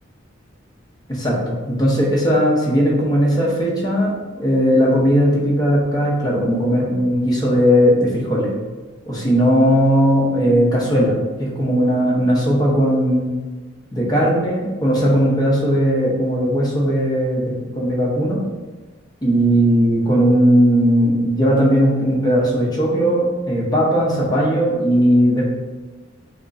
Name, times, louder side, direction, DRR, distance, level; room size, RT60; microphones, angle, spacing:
voice 1, 1.1-4.1 4.4-8.6 9.1-13.3 13.9-18.4 19.2-25.4, equal, 20° left, -4 dB, 0.8 m, -17 dB
5.9 x 2.0 x 2.6 m, 1.3 s
head